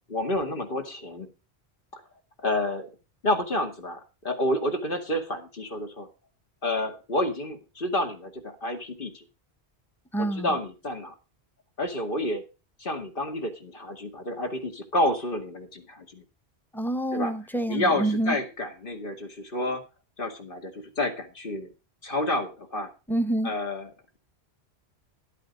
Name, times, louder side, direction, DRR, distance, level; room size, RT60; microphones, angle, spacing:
voice 1, 0.1-1.3 1.9-2.0 2.4-2.9 3.2-4.0 4.2-6.1 6.6-9.2 10.2-11.1 11.8-12.4 12.8-16.2 17.1-17.3 17.7-19.8 20.2-21.7 22.0-22.9 23.4-23.9, left 1 dB, 55° left, 2.4 m, -29 dB
voice 2, 10.1-10.5 16.7-18.4 23.1-23.5, right 1 dB, ahead, 1.1 m, -27 dB
13.0 x 8.3 x 5.2 m
omnidirectional pair, 1.1 m